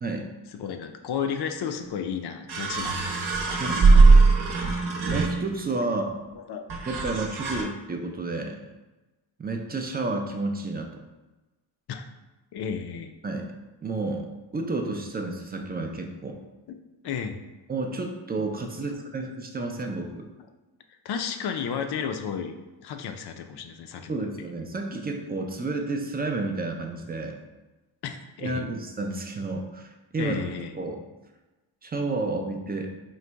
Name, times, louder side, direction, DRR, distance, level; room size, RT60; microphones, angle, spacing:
voice 1, 0.5-3.2 3.5-4.0 6.5-6.6 7.6-7.7 11.9-12.0 12.5-13.1 16.7-16.8 17.0-17.4 21.0-22.5 22.8-24.4 28.0-28.7 30.2-30.7, left 7 dB, 60° left, 6 dB, 0.5 m, -33 dB
sound 1, 1.8-1.9 2.5-5.7 6.7-7.6, right 3 dB, 60° right, 0.8 m, -20 dB
voice 2, 5.0-6.3 6.9-8.6 9.4-11.0 13.2-13.5 13.8-14.3 14.5-16.4 17.7-20.3 24.1-27.4 28.4-30.5 30.7-31.0 31.8-32.9, right 3 dB, 25° right, 3 dB, 0.3 m, -31 dB
3.9 x 2.1 x 4.5 m, 1.1 s
wide cardioid pair, 125°, 47 cm